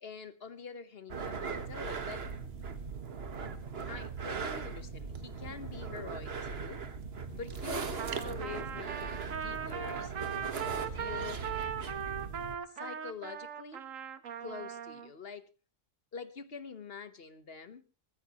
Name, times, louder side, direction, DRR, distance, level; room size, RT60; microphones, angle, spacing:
voice 1, 0.0-2.3 3.9-6.8 7.3-10.1 10.6-11.4 12.7-13.8 14.4-15.5 16.1-17.8, left 5 dB, 50° left, 1.3 m, -46 dB
sound 1, 1.1-12.6, right 5 dB, 50° right, 1.5 m, -39 dB
Trumpet, 8.0-15.1, right 8 dB, 80° right, 1.5 m, -39 dB
24.5 x 14.0 x 3.0 m
omnidirectional pair, 1.3 m